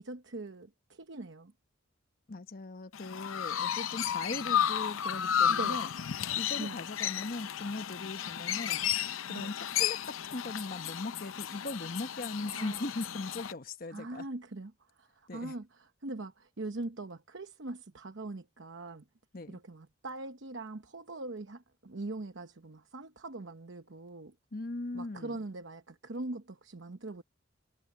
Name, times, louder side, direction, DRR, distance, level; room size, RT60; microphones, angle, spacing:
voice 1, 0.0-1.5 3.5-3.9 5.5-5.8 6.6-6.8 9.3-9.5 12.4-12.9 13.9-14.7 15.0-19.0 19.5-24.3 24.9-27.2, right 2 dB, 65° right, 1.0 m, -42 dB
voice 2, 2.3-5.9 6.4-8.8 9.3-14.3 15.3-15.5 19.3-19.6 24.5-25.4, left 2 dB, 45° left, 1.0 m, -39 dB
Chirp tweet, 2.9-13.5, left 9 dB, 85° left, 0.6 m, -33 dB
head